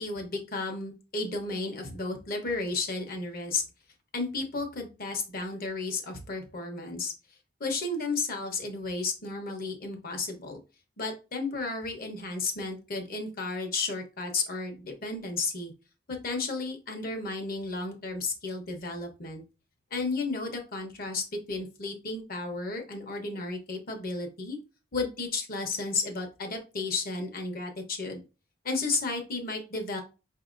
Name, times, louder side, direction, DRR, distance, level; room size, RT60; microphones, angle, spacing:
voice 1, 0.0-3.6 4.1-7.1 7.6-10.6 11.0-15.7 16.1-19.4 19.9-24.6 24.9-28.2 28.6-30.0, left 3 dB, 50° left, 4 dB, 1.0 m, -33 dB
5.1 x 2.7 x 2.5 m, 0.31 s
head